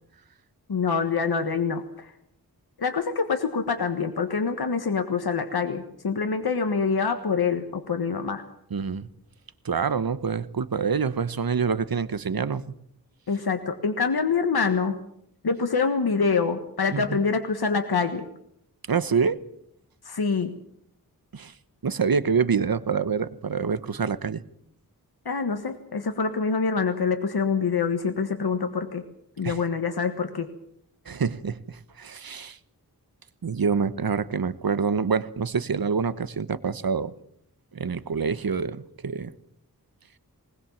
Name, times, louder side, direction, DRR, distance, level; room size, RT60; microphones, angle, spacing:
voice 1, 0.7-2.1 2.8-8.4 13.3-15.0 15.4-18.3 20.0-20.5 25.2-29.0 29.4-30.5, left 5 dB, 90° left, 7 dB, 1.5 m, -25 dB
voice 2, 8.7-9.1 9.6-12.6 16.9-17.2 18.9-19.4 21.3-21.5 21.8-24.4 29.4-29.6 31.0-32.6 33.4-37.1 37.7-39.3, right 5 dB, 70° right, 15 dB, 1.1 m, -26 dB
20.5 x 20.0 x 7.3 m, 0.72 s
wide cardioid pair, 70°, 37 cm